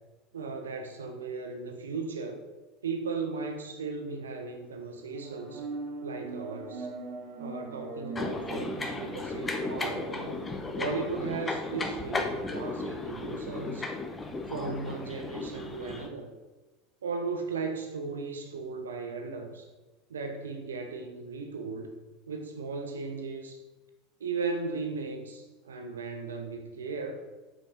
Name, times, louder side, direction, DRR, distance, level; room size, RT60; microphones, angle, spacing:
voice 1, 0.3-2.4 2.8-5.6 6.0-6.9 7.4-10.1 10.7-13.9 14.5-16.3 17.0-19.7 20.1-21.9 22.3-23.6 24.2-27.2, right 4 dB, 70° right, 5 dB, 1.0 m, -36 dB
sound 1, 5.1-10.5, right 3 dB, 50° right, 2.9 m, -41 dB
sound 2, 8.1-16.1, left 3 dB, 20° left, 1.2 m, -35 dB
8.2 x 7.3 x 5.2 m, 1.2 s
figure-of-eight pair, 75°, 0 cm